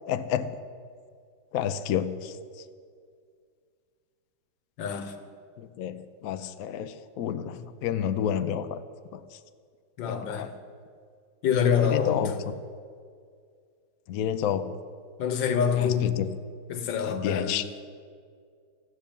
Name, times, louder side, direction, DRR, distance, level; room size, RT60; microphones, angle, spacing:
voice 1, 0.1-0.5 1.5-2.3 5.6-8.8 9.1-9.2 10.1-10.5 11.9-12.4 14.1-14.8 15.7-16.3 17.0-17.6, left 9 dB, 90° left, 0.7 m, -30 dB
voice 2, 4.8-5.1 7.5-7.6 10.0-10.5 11.4-12.2 15.2-16.2 16.7-17.6, left 7 dB, 65° left, 1.6 m, -26 dB
13.5 x 7.7 x 8.8 m
omnidirectional pair, 2.3 m